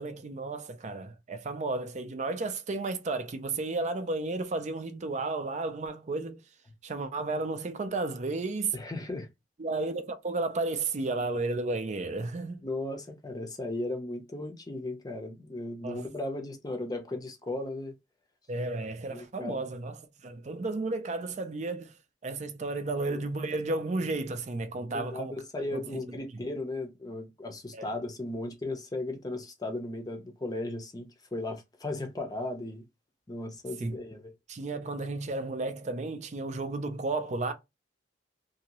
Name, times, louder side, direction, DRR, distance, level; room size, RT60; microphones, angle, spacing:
voice 1, 0.0-6.4 6.8-8.8 9.6-12.6 15.8-16.1 18.5-21.9 22.2-25.4 25.7-26.0 26.3-26.4 27.7-27.9 33.8-34.0 34.5-37.5, right 3 dB, 40° right, 0.4 m, -33 dB
voice 2, 8.7-9.3 12.6-18.0 19.1-19.7 23.1-23.2 24.8-32.8 33.3-34.3, left 2 dB, 20° left, 0.6 m, -36 dB
2.7 x 2.7 x 2.9 m
head